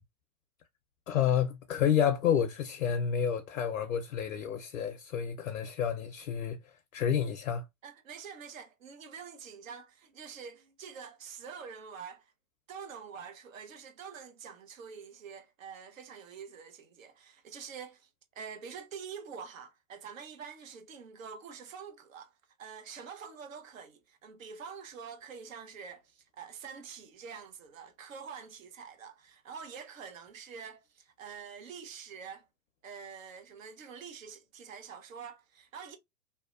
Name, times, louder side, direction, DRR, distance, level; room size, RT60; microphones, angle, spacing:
voice 1, 1.1-6.6 6.9-7.6, left 8 dB, 90° left, 0.5 m, -29 dB
voice 2, 7.8-12.3 12.7-18.1 18.3-22.3 22.6-32.5 32.8-36.0, right 6 dB, 80° right, 0.9 m, -46 dB
2.7 x 2.1 x 2.3 m
hypercardioid pair, 115°, 39 cm